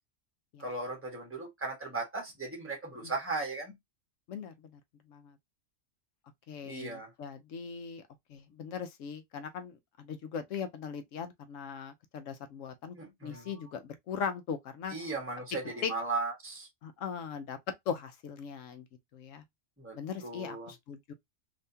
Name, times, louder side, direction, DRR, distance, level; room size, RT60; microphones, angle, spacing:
voice 1, 0.6-3.7 6.6-7.1 13.0-13.5 14.9-16.7 19.8-20.0 20.2-20.7, right 3 dB, 10° right, 1.3 m, -37 dB
voice 2, 4.3-4.8 5.1-5.3 6.5-8.0 8.3-13.0 13.2-14.9 15.8-15.9 16.8-17.6 17.9-18.8 19.1-19.4 19.9-21.1, left 7 dB, 80° left, 1.0 m, -39 dB
3.4 x 2.8 x 2.7 m
omnidirectional pair, 1.3 m